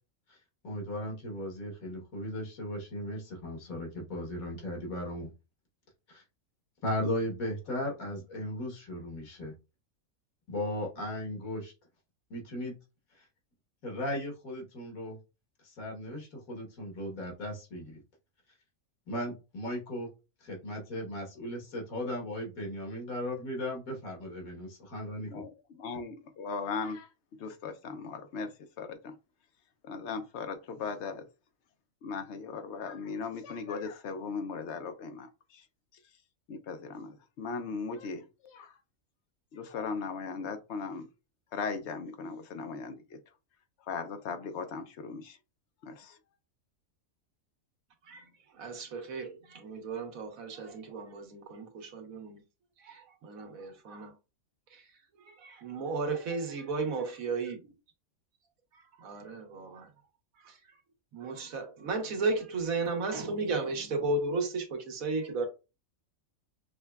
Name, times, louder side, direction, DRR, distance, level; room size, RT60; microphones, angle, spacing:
voice 1, 0.6-5.3 6.1-6.2 6.8-9.5 10.5-11.7 12.3-12.7 13.8-15.2 15.6-18.0 19.1-20.1 20.4-25.3, left 1 dB, 90° left, 1.7 m, -36 dB
voice 2, 25.3-27.1 27.4-29.2 29.8-31.3 32.0-35.7 35.9-36.0 36.5-38.8 39.5-41.1 41.5-43.2 43.8-45.4 45.8-46.2, left 5 dB, 65° left, 0.8 m, -38 dB
voice 3, 48.5-52.4 52.8-54.1 54.7-54.8 55.2-57.6 59.0-59.9 60.4-60.6 61.1-65.5, right 3 dB, 85° right, 1.4 m, -34 dB
6.3 x 2.2 x 2.3 m
omnidirectional pair, 1.4 m